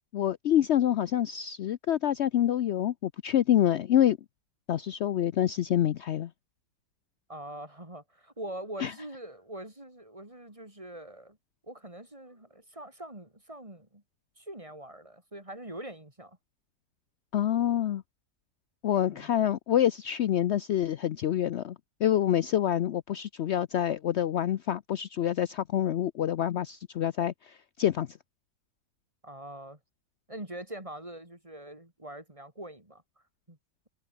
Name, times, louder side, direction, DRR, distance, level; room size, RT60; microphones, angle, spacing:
voice 1, 0.1-4.2 4.7-6.3 8.8-8.9 17.3-18.0 18.8-21.7 22.0-28.1, left 11 dB, 75° left, 0.6 m, -27 dB
voice 2, 7.3-11.4 11.6-14.0 14.4-16.4 19.0-19.3 29.2-29.8 30.3-33.0 33.5-33.6, right 1 dB, 20° right, 4.2 m, -43 dB
omnidirectional pair, 1.9 m